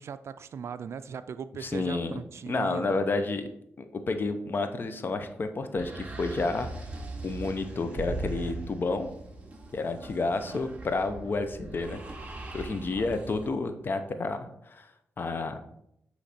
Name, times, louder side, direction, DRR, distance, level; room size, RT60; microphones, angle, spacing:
voice 1, 0.0-3.1 10.2-10.6 11.2-11.4, right 7 dB, 65° right, 13 dB, 0.3 m, -40 dB
voice 2, 1.6-2.2 2.5-3.5 3.8-6.7 7.2-9.1 9.7-12.0 12.5-14.9 15.2-15.6, left 3 dB, 45° left, 8 dB, 0.7 m, -30 dB
sound 1, 5.8-13.5, right 2 dB, 25° right, 1.2 m, -42 dB
sound 2, 8.0-10.5, right 2 dB, 15° left, 2.4 m, -39 dB
8.2 x 3.2 x 4.1 m, 0.75 s
cardioid pair, 100°, 5 cm